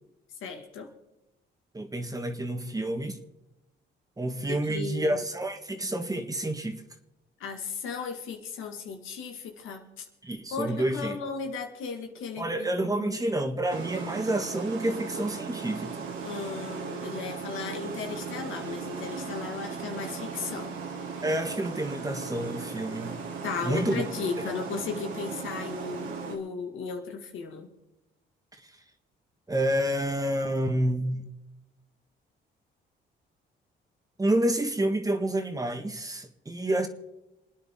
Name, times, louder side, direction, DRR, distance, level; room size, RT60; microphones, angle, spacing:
voice 1, 0.4-0.9 4.5-5.2 7.4-10.1 10.5-12.7 13.0-13.2 16.2-20.8 23.4-27.7, left 5 dB, 85° left, 2.2 m, -36 dB
voice 2, 1.7-3.2 4.2-6.8 10.2-11.2 12.4-16.1 21.2-23.2 23.6-24.0 24.4-24.5 29.5-31.3 34.2-36.9, right 1 dB, 20° right, 1.8 m, -29 dB
sound 1, 13.7-26.4, right 5 dB, 80° right, 2.8 m, -37 dB
28.0 x 9.7 x 3.8 m
cardioid pair, 90°, 20 cm